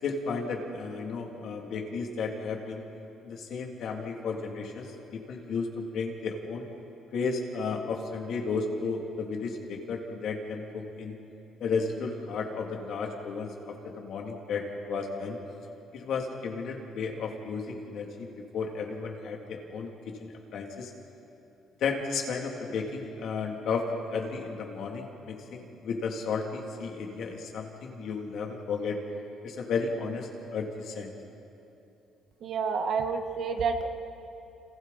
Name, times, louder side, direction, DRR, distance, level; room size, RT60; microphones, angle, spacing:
voice 1, 0.0-2.8 3.2-4.9 5.1-6.7 7.1-11.2 11.6-15.4 15.9-19.9 20.2-20.9 21.8-29.0 29.4-31.1, left 4 dB, 65° left, 1 dB, 3.0 m, -33 dB
voice 2, 32.4-33.9, right 5 dB, 55° right, 5 dB, 1.6 m, -29 dB
30.0 x 27.0 x 4.3 m, 2.9 s
cardioid pair, 130°, 0 cm